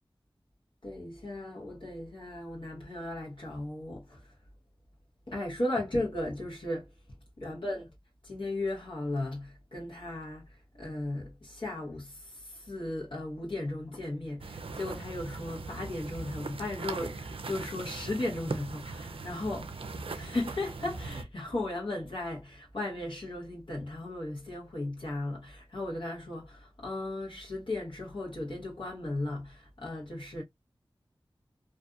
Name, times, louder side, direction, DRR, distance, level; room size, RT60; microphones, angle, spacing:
voice 1, 0.8-4.3 5.3-6.9 7.4-7.8 8.2-19.7 20.1-30.4, left 2 dB, 65° left, 1.0 m, -36 dB
sound 1, 14.4-21.2, right 3 dB, 80° right, 0.4 m, -40 dB
2.5 x 2.3 x 2.4 m
wide cardioid pair, 65°, 9 cm